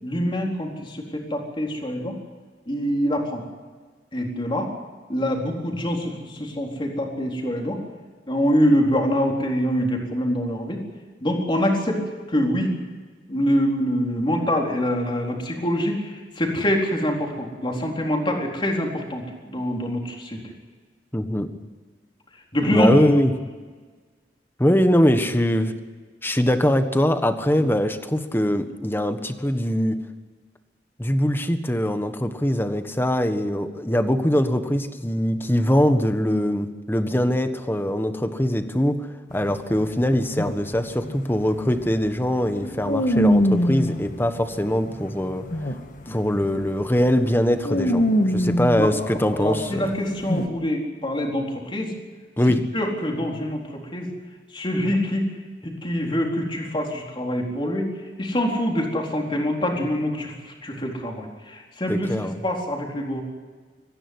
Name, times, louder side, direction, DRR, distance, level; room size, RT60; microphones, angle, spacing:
voice 1, 0.0-2.1 2.7-3.4 4.1-4.7 5.1-7.8 8.3-10.8 11.2-12.0 12.3-12.8 13.3-20.5 22.5-22.9 27.6-27.7 42.6-42.7 46.1-46.2 48.8-51.9 52.7-54.1 54.5-55.2 55.6-57.9 58.2-62.1 62.4-63.2, equal, 30° left, 0 dB, 4.1 m, -25 dB
voice 2, 21.1-21.5 22.7-23.3 24.6-25.7 26.2-30.0 31.0-45.4 46.1-49.9 52.4-52.6 61.9-62.4, equal, 15° left, 8 dB, 1.4 m, -22 dB
sound 1, 39.3-46.0 46.4-46.7 47.0-49.6 50.2-50.5, equal, 50° left, 1.6 m, -24 dB
23.5 x 15.5 x 9.7 m, 1.4 s
head